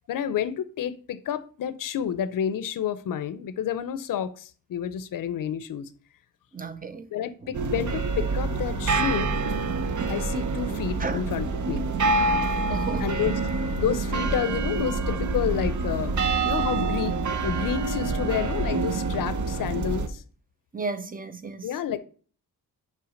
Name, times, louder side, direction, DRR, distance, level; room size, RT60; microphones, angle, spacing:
voice 1, 0.1-5.9 7.1-9.4 10.1-11.9 13.0-13.4 13.8-20.2 21.6-22.0, left 9 dB, 70° left, 0.6 m, -30 dB
voice 2, 6.5-7.1 7.4-7.5 11.0-11.2 12.3-13.1 16.6-16.7 20.7-21.7, right 4 dB, 25° right, 0.6 m, -34 dB
sound 1, 7.5-20.1, right 3 dB, 60° right, 0.8 m, -26 dB
5.7 x 4.7 x 5.1 m
wide cardioid pair, 130°, 34 cm